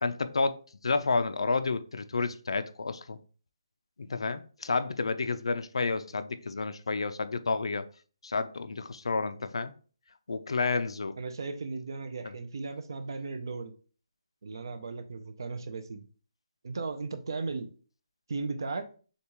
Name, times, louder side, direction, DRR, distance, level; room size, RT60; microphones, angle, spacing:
voice 1, 0.0-3.2 4.0-7.8 8.2-9.7 10.3-11.1 12.2-12.3, left 4 dB, 65° left, 0.5 m, -30 dB
voice 2, 11.2-13.7 14.4-16.1 16.6-17.7 18.3-18.9, right 4 dB, 45° right, 0.6 m, -36 dB
6.6 x 2.4 x 3.0 m
hypercardioid pair, 180°, 3 cm